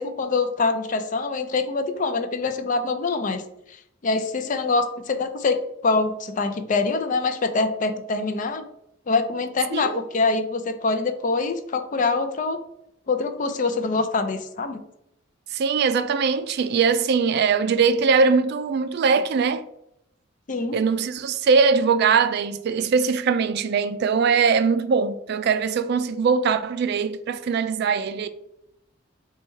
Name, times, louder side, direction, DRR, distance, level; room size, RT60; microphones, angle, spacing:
voice 1, 0.0-3.4 4.0-5.6 5.8-8.6 9.1-12.6 13.1-14.8 20.5-20.8, left 3 dB, 40° left, 0.4 m, -24 dB
voice 2, 9.7-10.1 15.5-19.6 20.7-28.3, right 5 dB, 55° right, 0.3 m, -21 dB
4.2 x 2.3 x 4.5 m
head